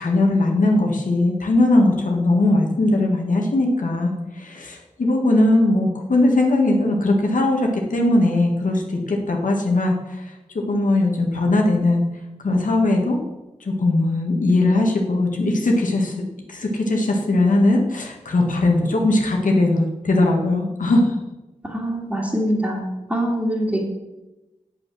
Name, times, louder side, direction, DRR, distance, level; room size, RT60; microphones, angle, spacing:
voice 1, 0.0-10.3 10.7-12.0 12.4-13.2 13.6-16.1 16.5-21.1, left 2 dB, 85° left, 1 dB, 1.8 m, -19 dB
voice 2, 21.7-23.9, equal, 10° right, -6 dB, 2.4 m, -24 dB
8.4 x 8.3 x 6.3 m, 1.0 s
wide cardioid pair, 80°, 13 cm